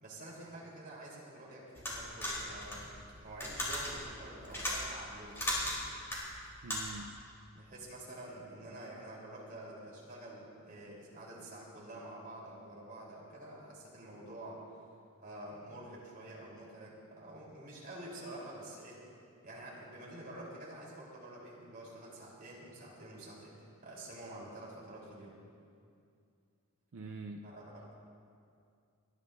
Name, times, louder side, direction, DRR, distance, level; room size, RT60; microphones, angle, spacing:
voice 1, 0.0-2.9 3.2-5.7 7.5-14.8 15.2-19.0 19.4-23.5 23.8-25.3 27.4-27.9, right 1 dB, 40° right, -5 dB, 3.6 m, -48 dB
sound 1, 1.8-7.1, left 1 dB, 10° left, 3.4 m, -37 dB
voice 2, 6.6-7.2 26.9-27.5, right 3 dB, 65° right, 5 dB, 0.5 m, -44 dB
30.0 x 11.0 x 2.6 m, 2.4 s
head